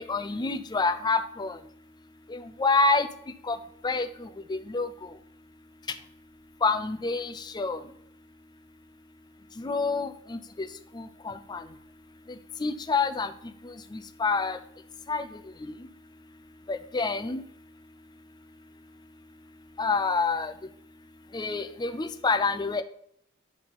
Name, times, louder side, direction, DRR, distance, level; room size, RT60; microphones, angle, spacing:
voice 1, 0.0-1.6 2.3-3.1 3.5-3.6 3.8-4.9 6.6-7.8 9.6-10.7 10.9-11.6 12.6-13.3 13.9-14.6 15.1-15.2 15.6-15.7 16.7-17.4 19.8-20.5 21.3-22.8, left 4 dB, 20° left, 10 dB, 0.4 m, -27 dB
11.0 x 4.3 x 4.0 m, 0.69 s
head